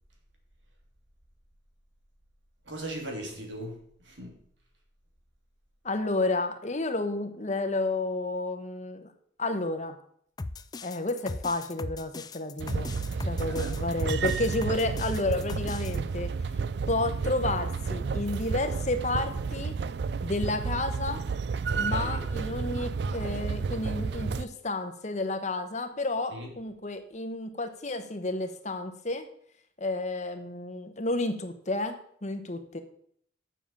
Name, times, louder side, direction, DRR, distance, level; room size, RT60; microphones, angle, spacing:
voice 1, 2.7-4.4 13.1-13.8 21.7-22.2 26.3-26.5, right 1 dB, 80° right, 1 dB, 2.9 m, -39 dB
voice 2, 5.8-9.1 9.4-9.9 10.8-12.9 13.3-16.3 16.9-19.8 20.2-21.2 21.8-29.2 29.8-32.8, left 2 dB, 40° left, 7 dB, 1.1 m, -31 dB
sound 1, 10.4-16.0, left 3 dB, 20° left, 0.3 m, -38 dB
sound 2, 12.6-24.5, right 5 dB, 60° right, 0.4 m, -31 dB
7.5 x 7.1 x 7.2 m, 0.64 s
head